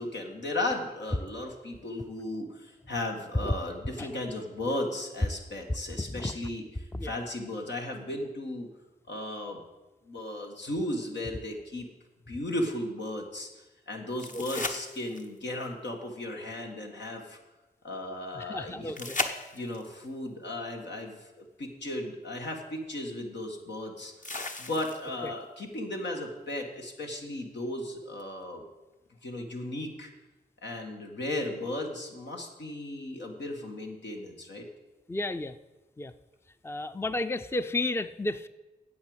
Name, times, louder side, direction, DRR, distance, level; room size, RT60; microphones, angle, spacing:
voice 1, 0.0-8.7 9.1-9.6 10.1-11.9 12.3-17.4 17.8-19.1 19.5-28.6 29.2-30.1 30.6-34.7, left 1 dB, 85° left, 1 dB, 1.9 m, -36 dB
sound 1, 14.2-15.5 19.0-19.9 21.8-21.9 24.2-25.3 28.2-28.3, left 3 dB, 45° left, 1.1 m, -35 dB
voice 2, 18.4-19.2 25.2-25.3 35.1-35.6 36.0-36.1 36.6-38.5, left 2 dB, 15° left, 12 dB, 0.5 m, -32 dB
8.7 x 8.1 x 8.0 m, 1.1 s
cardioid pair, 60°, 18 cm